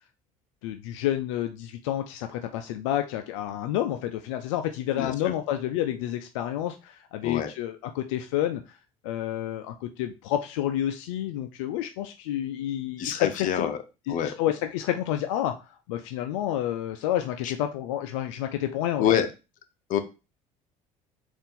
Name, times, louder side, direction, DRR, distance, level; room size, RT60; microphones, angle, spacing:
voice 1, 0.6-8.6 9.0-13.7 14.1-19.0, left 12 dB, 90° left, 7 dB, 0.4 m, -29 dB
voice 2, 5.0-5.3 7.2-7.5 13.0-13.8 14.1-14.3 17.4-17.5 19.0-19.3 19.9-20.0, left 9 dB, 60° left, 8 dB, 0.7 m, -26 dB
4.1 x 2.5 x 3.7 m, 0.28 s
supercardioid pair, 85°, 15 cm